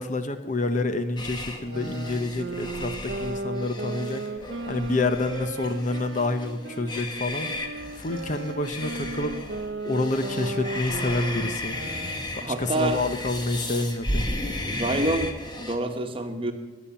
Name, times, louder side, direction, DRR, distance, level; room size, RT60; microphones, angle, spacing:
voice 1, 0.0-4.2 4.7-7.5 8.0-9.3 9.8-11.8 12.6-14.2, left 2 dB, 45° left, 9 dB, 0.9 m, -28 dB
sound 1, 1.2-15.7, left 1 dB, 25° left, 1.5 m, -35 dB
sound 2, 1.5-6.9 7.4-12.3, right 2 dB, 70° right, 0.6 m, -35 dB
voice 2, 12.4-13.0 14.6-16.5, right 1 dB, 30° right, 6 dB, 1.2 m, -27 dB
20.5 x 7.2 x 7.1 m, 1.2 s
head